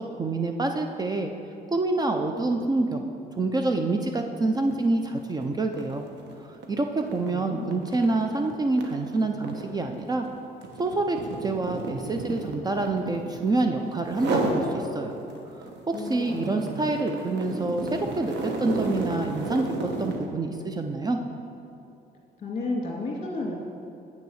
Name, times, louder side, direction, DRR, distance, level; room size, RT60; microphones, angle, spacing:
voice 1, 0.2-1.3 1.7-6.0 6.4-10.3 10.8-15.2 15.9-19.7 20.0-21.2, right 2 dB, 20° right, 5 dB, 0.5 m, -27 dB
sound 1, 4.6-4.9 5.2-13.6 14.1-14.7 15.1-20.3, right 2 dB, 80° right, 1.2 m, -33 dB
voice 2, 7.2-7.9 15.9-16.9 22.4-23.6, left 2 dB, 35° left, -1 dB, 2.3 m, -33 dB
8.3 x 6.9 x 6.3 m, 2.8 s
cardioid pair, 125°, 18 cm